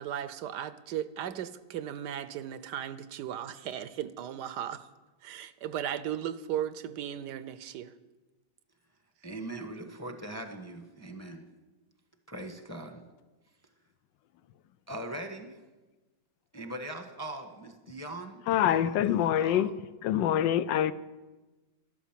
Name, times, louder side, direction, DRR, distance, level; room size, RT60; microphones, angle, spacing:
voice 1, 0.0-4.9 5.2-7.9, right 10 dB, 75° right, 14 dB, 1.2 m, -36 dB
voice 2, 9.2-11.5 12.3-13.0 14.9-15.6 16.5-19.7, right 1 dB, 10° left, 6 dB, 0.9 m, -41 dB
voice 3, 18.5-19.7 20.0-20.9, left 10 dB, 80° left, 16 dB, 1.3 m, -25 dB
12.5 x 12.5 x 7.4 m, 1.2 s
omnidirectional pair, 2.0 m